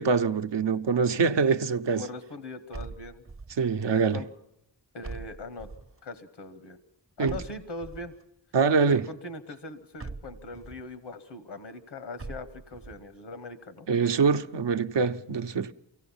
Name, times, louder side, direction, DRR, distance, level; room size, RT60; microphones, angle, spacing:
voice 1, 0.0-2.0 3.6-4.2 7.2-7.4 8.5-9.0 13.9-15.7, right 5 dB, 70° right, 0.8 m, -24 dB
voice 2, 1.9-3.2 3.9-4.3 4.9-5.7 6.0-6.8 7.2-8.1 8.8-13.9, left 2 dB, 90° left, 1.1 m, -41 dB
sound 1, 2.7-3.7 5.0-6.0 7.3-8.2 10.0-10.9 12.2-13.0, right 3 dB, 30° right, 0.7 m, -42 dB
23.5 x 16.5 x 7.2 m
wide cardioid pair, 60°, 45 cm